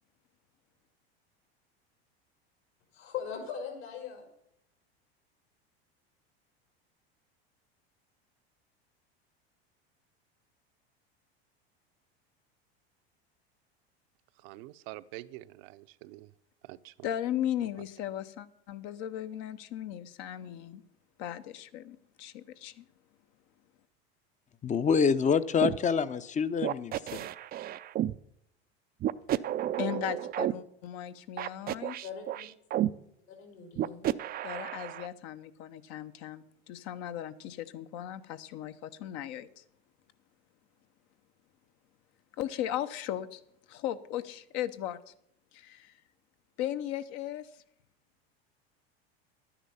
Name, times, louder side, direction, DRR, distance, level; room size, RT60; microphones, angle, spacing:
voice 1, 2.9-4.3 32.0-32.5 33.3-34.1, left 7 dB, 75° left, 1 dB, 5.3 m, -40 dB
voice 2, 14.4-16.3 16.6-16.9, right 17 dB, 65° right, 13 dB, 0.7 m, -46 dB
voice 3, 17.0-20.8 21.2-22.8 29.8-32.0 34.4-39.6 42.4-43.4 43.7-45.0 45.5-45.9 46.6-47.5, left 11 dB, 60° left, 11 dB, 0.9 m, -37 dB
voice 4, 24.6-27.2, left 6 dB, 25° left, 14 dB, 0.6 m, -26 dB
sound 1, 25.6-25.8 26.6-28.2 29.0-30.5 31.4-32.9 33.8-35.1, right 12 dB, 30° right, 0.4 m, -31 dB
11.5 x 10.0 x 5.6 m, 0.74 s
hypercardioid pair, 95°, 32 cm